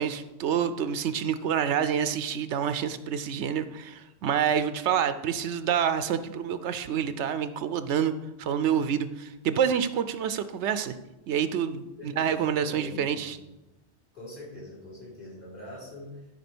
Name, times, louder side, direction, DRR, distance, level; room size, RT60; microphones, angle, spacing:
voice 1, 0.0-8.1 8.4-10.9 11.3-13.4, right 8 dB, 75° right, 12 dB, 0.9 m, -27 dB
voice 2, 12.0-13.4 14.1-16.3, left 1 dB, 45° left, -5 dB, 4.7 m, -43 dB
12.5 x 4.8 x 6.0 m, 0.99 s
omnidirectional pair, 1.2 m